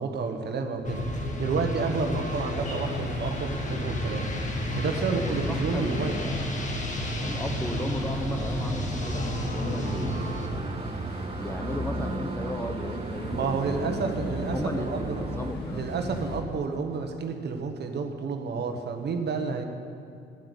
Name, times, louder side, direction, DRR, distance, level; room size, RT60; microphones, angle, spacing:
voice 1, 0.0-4.3 4.7-6.2 13.3-15.2 15.7-19.6, right 4 dB, 55° right, 5 dB, 1.3 m, -30 dB
sound 1, 0.8-10.5, left 1 dB, 40° left, 1.7 m, -32 dB
sound 2, 2.6-16.4, left 2 dB, 55° left, 2.1 m, -39 dB
sound 3, 2.8-15.5, right 5 dB, 30° right, 0.5 m, -38 dB
voice 2, 4.9-6.5 7.2-10.4 11.4-13.5 13.8-14.1 14.5-15.9, left 1 dB, 10° left, 5 dB, 1.1 m, -35 dB
11.5 x 7.9 x 8.2 m, 2.4 s
cardioid pair, 90°, 20 cm